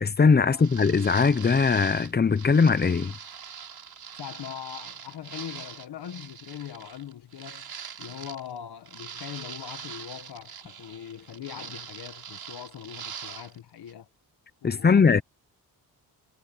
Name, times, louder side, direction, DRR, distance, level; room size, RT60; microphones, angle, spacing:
voice 1, 0.0-3.1 14.6-15.2, left 5 dB, 25° left, 0.7 m, -20 dB
sound 1, 0.5-8.6 8.9-13.6 13.9-14.0, right 7 dB, 65° right, 5.2 m, -42 dB
voice 2, 4.2-7.7 8.0-14.1 14.6-15.2, left 9 dB, 80° left, 1.7 m, -41 dB
cardioid pair, 105°, 39 cm